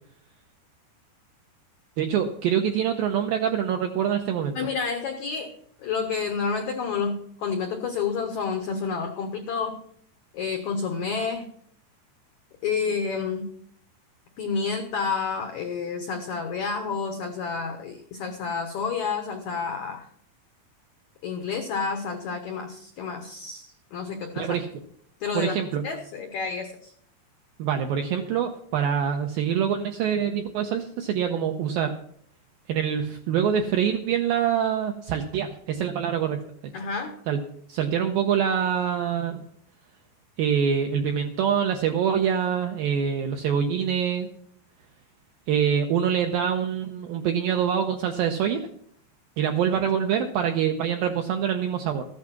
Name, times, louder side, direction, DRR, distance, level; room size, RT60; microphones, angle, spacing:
voice 1, 2.0-4.6 24.4-24.7 25.3-25.8 27.6-31.9 32.7-36.4 37.3-37.4 37.7-39.4 40.4-44.3 45.5-48.6 49.4-52.0, right 8 dB, 85° right, 5 dB, 2.0 m, -25 dB
voice 2, 4.6-5.5 5.8-9.8 10.3-11.5 12.6-13.5 14.4-20.1 21.2-24.6 25.2-25.6 25.8-26.9 36.7-37.1, left 5 dB, 85° left, 4 dB, 1.6 m, -29 dB
14.0 x 8.6 x 5.9 m, 0.63 s
omnidirectional pair, 5.0 m